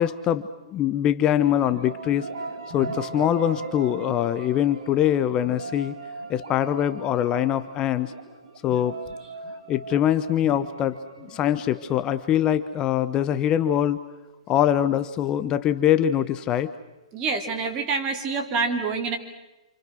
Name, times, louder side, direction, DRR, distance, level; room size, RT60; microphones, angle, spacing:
voice 1, 0.0-2.3 2.7-6.0 6.3-8.1 8.6-9.0 9.7-14.0 14.5-16.7, left 11 dB, 25° left, 12 dB, 0.8 m, -23 dB
sound 1, 1.4-13.2, right 3 dB, 65° right, 4.9 m, -39 dB
voice 2, 17.1-19.2, right 4 dB, 25° right, 4 dB, 3.5 m, -26 dB
28.5 x 26.0 x 6.2 m, 1.1 s
hypercardioid pair, 140°, 3 cm